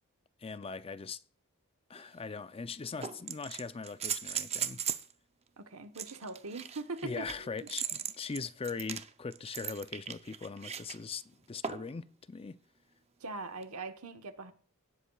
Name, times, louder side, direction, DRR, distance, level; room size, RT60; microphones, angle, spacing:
voice 1, 0.4-1.2 1.9-4.8 7.0-12.6, left 4 dB, 25° left, 0.5 m, -40 dB
sound 1, 2.0-2.1 3.0-5.1 5.9-11.0 11.6-12.0 13.6-13.7, right 8 dB, 30° right, 0.6 m, -38 dB
voice 2, 5.6-7.5 13.2-14.5, right 3 dB, 75° right, 1.2 m, -41 dB
17.5 x 8.3 x 2.4 m
head